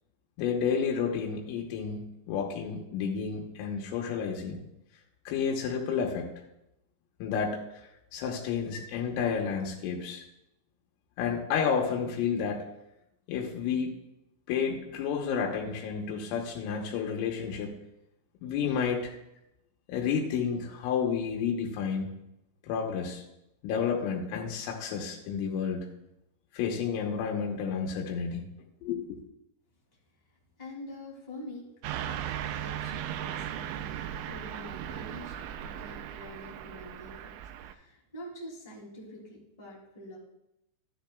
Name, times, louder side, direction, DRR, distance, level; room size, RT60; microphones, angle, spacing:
voice 1, 0.4-4.6 5.3-6.3 7.2-7.8 8.1-10.2 11.2-12.7 13.3-13.9 14.5-17.8 18.4-19.1 19.9-22.1 22.7-23.2 23.6-25.9 26.5-28.5 28.8-29.0, left 6 dB, 90° left, 0 dB, 3.7 m, -31 dB
voice 2, 30.6-31.6 32.0-37.3 37.6-40.2, left 1 dB, 15° left, -3 dB, 1.5 m, -46 dB
Car passing by / Truck, 31.8-37.7, right 10 dB, 85° right, 2.9 m, -37 dB
13.5 x 10.5 x 2.3 m, 0.84 s
omnidirectional pair, 5.7 m